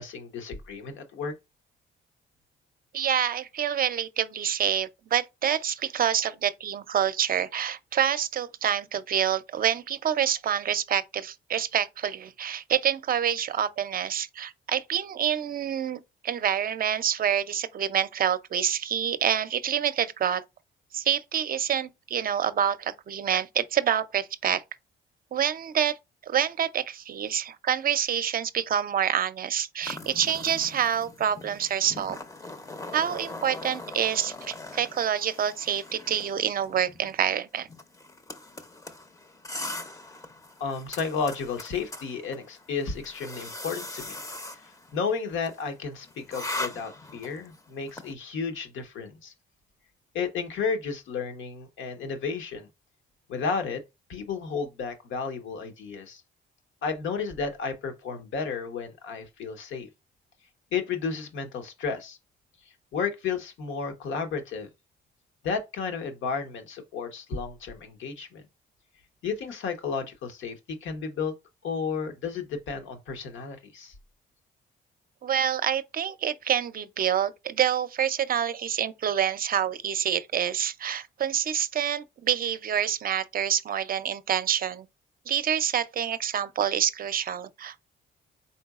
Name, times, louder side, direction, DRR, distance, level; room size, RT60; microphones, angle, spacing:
voice 1, 0.0-1.3 40.6-44.2 44.5-49.3 50.1-52.7 53.3-53.8 54.1-56.2 56.8-59.9 60.7-62.2 62.9-64.7 65.4-68.4 69.2-71.3 71.6-73.9, left 5 dB, 75° left, 1.1 m, -32 dB
voice 2, 2.9-20.4 20.9-24.6 25.3-25.9 26.3-32.2 32.9-37.7 75.2-84.9 85.3-87.8, right 9 dB, 45° right, 0.5 m, -27 dB
sound 1, 29.8-48.1, left 2 dB, 15° left, 0.6 m, -41 dB
4.2 x 3.9 x 2.4 m
cardioid pair, 90°, 20 cm